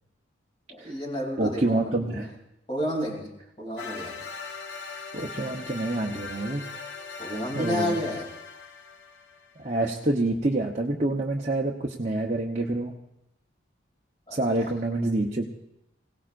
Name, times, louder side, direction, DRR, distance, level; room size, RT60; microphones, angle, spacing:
voice 1, 0.7-2.3 2.7-4.2 7.2-8.3 14.3-14.7, equal, 25° left, 0 dB, 3.1 m, -31 dB
voice 2, 1.4-2.3 5.1-6.6 7.5-8.0 9.6-12.9 14.3-15.5, right 2 dB, 35° right, -2 dB, 0.9 m, -27 dB
sound 1, 3.8-9.7, left 5 dB, 75° left, 1.2 m, -40 dB
25.5 x 17.5 x 2.6 m, 0.86 s
head